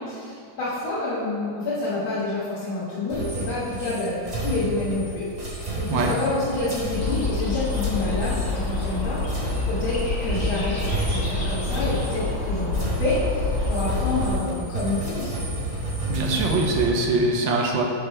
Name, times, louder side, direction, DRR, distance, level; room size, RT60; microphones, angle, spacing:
voice 1, 0.0-12.7 13.0-15.4, left 2 dB, 85° left, -10 dB, 2.5 m, -28 dB
sound 1, 3.1-10.1 10.3-16.9, right 2 dB, 20° right, 1.8 m, -32 dB
sound 2, 6.9-14.3, left 2 dB, 70° left, 2.5 m, -27 dB
voice 2, 16.1-17.8, right 2 dB, 70° right, 0 dB, 1.5 m, -22 dB
6.7 x 5.2 x 5.5 m, 2.6 s
omnidirectional pair, 2.2 m